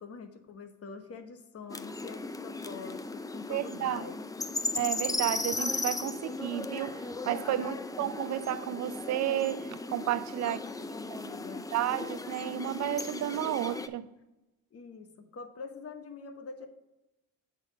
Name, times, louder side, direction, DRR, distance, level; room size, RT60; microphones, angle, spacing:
voice 1, 0.0-4.2 7.6-8.1 10.3-11.7 14.7-16.7, left 4 dB, 50° left, 1.1 m, -45 dB
sound 1, 1.7-13.9, left 3 dB, 10° left, 0.4 m, -37 dB
voice 2, 3.5-4.0 4.8-10.6 11.7-14.1, right 12 dB, 65° right, 0.5 m, -32 dB
7.9 x 4.1 x 5.2 m
cardioid pair, 90°, 30 cm